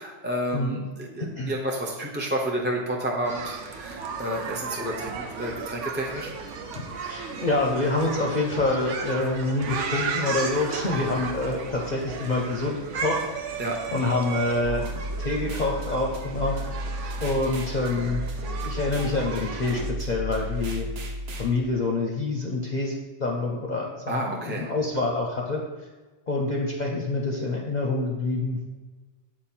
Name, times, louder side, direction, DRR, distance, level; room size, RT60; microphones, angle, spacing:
voice 1, 0.0-6.3 13.6-13.8 24.1-24.7, right 1 dB, 10° right, -1 dB, 0.6 m, -30 dB
sound 1, 3.2-19.9, right 5 dB, 85° right, 1.1 m, -35 dB
voice 2, 7.0-13.2 13.9-14.9 15.2-16.8 17.2-18.2 18.6-20.9 21.3-22.9 23.2-25.6 26.3-28.6, left 2 dB, 45° left, 0 dB, 0.7 m, -26 dB
sound 2, 14.6-21.5, equal, 60° right, 1.0 m, -33 dB
7.4 x 4.5 x 4.4 m, 1.3 s
omnidirectional pair, 1.2 m